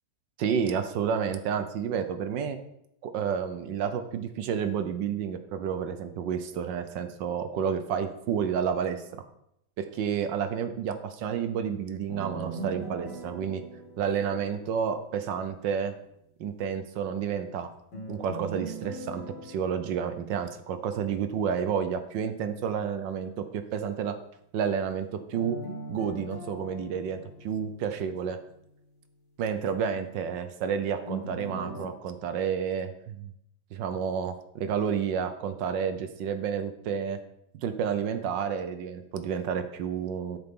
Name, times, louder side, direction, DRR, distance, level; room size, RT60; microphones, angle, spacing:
voice 1, 0.4-2.6 3.0-9.2 9.8-13.6 14.0-15.9 16.4-17.7 18.1-24.1 24.5-25.6 25.9-28.4 29.4-33.3 33.7-37.2 37.6-40.4, right 7 dB, 70° right, 9 dB, 1.3 m, -30 dB
sound 1, 12.1-15.2 17.9-21.2 25.3-28.4 31.1-31.9, right 2 dB, 60° left, 2.5 m, -40 dB
12.0 x 6.7 x 3.7 m, 0.77 s
omnidirectional pair, 2.2 m